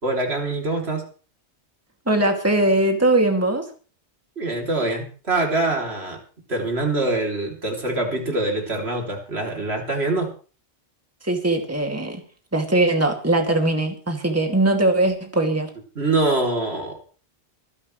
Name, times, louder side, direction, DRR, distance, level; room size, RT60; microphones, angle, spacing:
voice 1, 0.0-1.0 4.4-6.2 6.5-10.3 15.9-17.1, right 2 dB, 65° right, 2 dB, 3.4 m, -24 dB
voice 2, 2.1-3.7 11.2-12.2 12.5-15.7, right 2 dB, 15° right, 3 dB, 2.4 m, -20 dB
25.5 x 11.0 x 3.2 m, 0.38 s
omnidirectional pair, 1.1 m